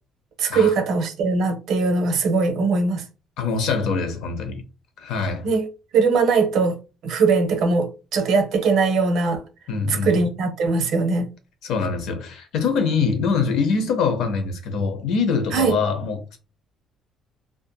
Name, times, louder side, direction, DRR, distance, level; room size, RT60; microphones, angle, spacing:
voice 1, 0.4-3.0 5.4-6.8 7.0-9.4 9.9-11.3 15.5-15.8, right 4 dB, 65° right, 0.7 m, -21 dB
voice 2, 3.4-4.6 5.0-5.5 9.7-10.2 11.6-16.4, left 5 dB, 70° left, 0.7 m, -24 dB
2.7 x 2.5 x 2.3 m
cardioid pair, 140°, 0 cm